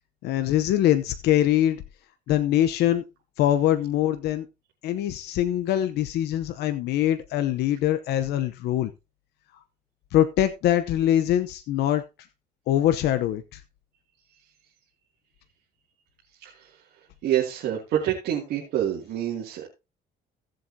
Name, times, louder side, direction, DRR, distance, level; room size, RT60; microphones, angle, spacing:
voice 1, 0.2-1.8 2.3-3.0 3.4-4.5 4.8-8.9 10.1-12.0 12.7-13.6, left 12 dB, 80° left, 9 dB, 0.8 m, -23 dB
voice 2, 16.4-16.8 17.2-19.7, right 11 dB, 75° right, -3 dB, 2.5 m, -27 dB
16.5 x 7.7 x 2.8 m, 0.26 s
cardioid pair, 110°, 17 cm